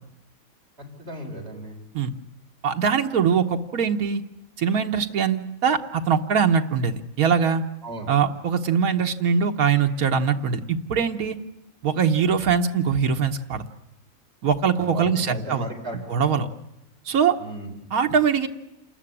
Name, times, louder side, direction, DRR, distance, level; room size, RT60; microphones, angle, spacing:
voice 1, 1.0-1.8 7.8-8.1 14.8-16.0 17.4-17.7, right 2 dB, 45° right, 0 dB, 5.3 m, -35 dB
voice 2, 2.6-4.2 4.6-7.6 8.1-11.4 11.8-13.7 14.4-15.7 16.1-16.5 17.0-17.4 17.9-18.5, right 6 dB, 90° right, 4 dB, 1.6 m, -22 dB
28.5 x 14.0 x 9.9 m, 0.87 s
omnidirectional pair, 1.5 m